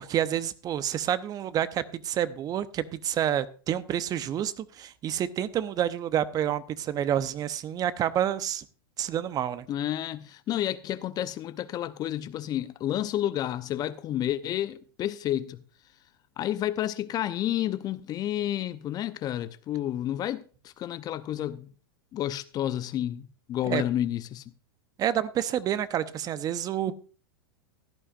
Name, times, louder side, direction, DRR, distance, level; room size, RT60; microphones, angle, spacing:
voice 1, 0.0-8.6 9.0-9.7 23.6-23.8 25.0-27.1, right 10 dB, 30° right, 0.8 m, -29 dB
voice 2, 9.7-15.6 16.4-21.7 22.1-24.4, left 12 dB, 30° left, 0.6 m, -30 dB
16.0 x 11.0 x 2.5 m
hypercardioid pair, 105°, 12 cm